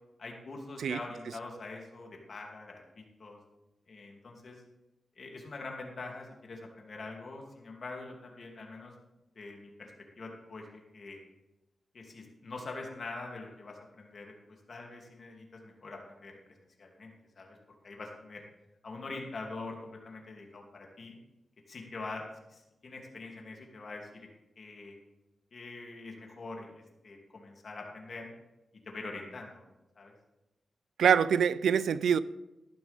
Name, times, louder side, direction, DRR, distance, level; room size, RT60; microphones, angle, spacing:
voice 1, 0.2-3.4 3.9-4.6 5.2-8.9 9.3-9.9 10.2-11.2 11.9-16.4 16.8-17.6 17.8-18.4 18.8-21.2 21.7-24.3 24.6-25.0 25.5-28.3 28.8-29.7 30.0-30.1, left 3 dB, 50° left, 2.7 m, -44 dB
voice 2, 31.0-32.2, right 7 dB, 90° right, 0.4 m, -25 dB
14.0 x 11.5 x 3.5 m
wide cardioid pair, 110°, 0 cm